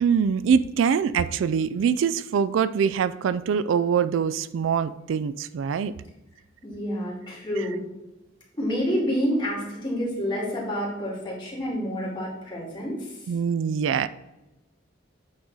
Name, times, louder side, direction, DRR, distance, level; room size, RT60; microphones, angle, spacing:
voice 1, 0.0-5.9 13.3-14.1, right 7 dB, 80° right, 14 dB, 0.3 m, -23 dB
voice 2, 6.6-7.8 8.6-13.1, equal, 25° left, -6 dB, 2.4 m, -28 dB
8.6 x 3.8 x 4.1 m, 1.0 s
head